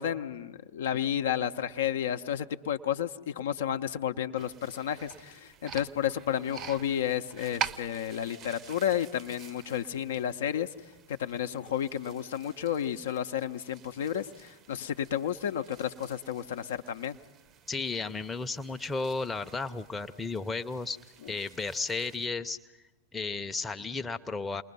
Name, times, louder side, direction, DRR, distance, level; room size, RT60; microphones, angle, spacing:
voice 1, 0.0-10.7 11.2-17.2, left 9 dB, 60° left, 8 dB, 0.7 m, -31 dB
sound 1, 4.4-22.3, right 9 dB, 30° right, 0.7 m, -46 dB
voice 2, 17.7-21.0 21.3-22.6 23.1-24.6, left 3 dB, 10° left, 6 dB, 0.7 m, -33 dB
29.0 x 20.5 x 5.4 m, 1.1 s
figure-of-eight pair, 90°, 0 cm